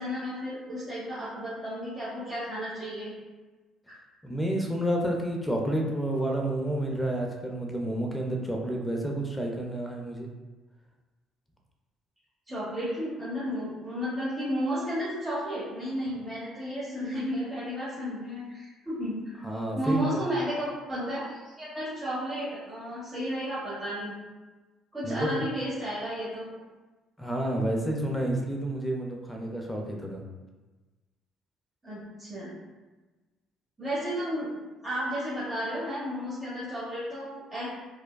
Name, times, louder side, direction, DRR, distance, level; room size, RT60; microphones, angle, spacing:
voice 1, 0.0-3.1 3.9-4.0 12.5-19.4 19.7-24.1 24.9-26.5 31.8-32.5 33.8-34.5 34.8-37.7, equal, 20° right, -11 dB, 1.2 m, -33 dB
voice 2, 4.2-10.3 19.4-20.2 25.0-25.4 27.2-30.2, right 1 dB, 10° left, 1 dB, 0.7 m, -30 dB
4.4 x 2.2 x 2.3 m, 1.2 s
hypercardioid pair, 50°, 0 cm